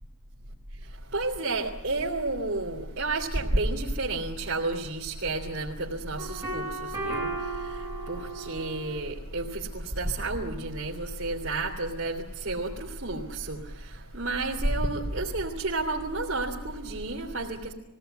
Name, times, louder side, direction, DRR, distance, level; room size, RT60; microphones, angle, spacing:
voice 1, 1.1-17.7, right 2 dB, 60° right, 2.7 m, -31 dB
sound 1, 6.2-9.0, right 2 dB, 15° right, 3.8 m, -35 dB
21.0 x 17.5 x 9.1 m
head